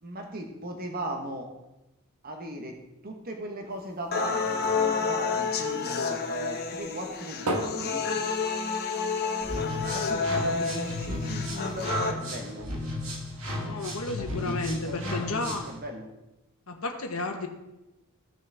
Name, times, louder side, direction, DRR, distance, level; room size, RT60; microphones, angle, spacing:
voice 1, 0.0-1.5 2.2-2.8 3.0-8.1 9.9-12.7 14.2-16.1, right 1 dB, 45° right, 3 dB, 1.2 m, -38 dB
sound 1, 3.7-6.4 6.7-9.0 9.3-9.4 9.7-9.8 10.3-11.8 12.4-12.5, right 1 dB, 90° right, 1.4 m, -38 dB
sound 2, 4.1-12.1, left 4 dB, 45° left, 1.0 m, -29 dB
sound 3, 9.4-15.8, left 1 dB, 65° right, 2.2 m, -34 dB
voice 2, 13.6-15.7 16.7-17.5, left 2 dB, 70° left, 3 dB, 1.1 m, -32 dB
15.5 x 6.3 x 3.5 m, 0.97 s
head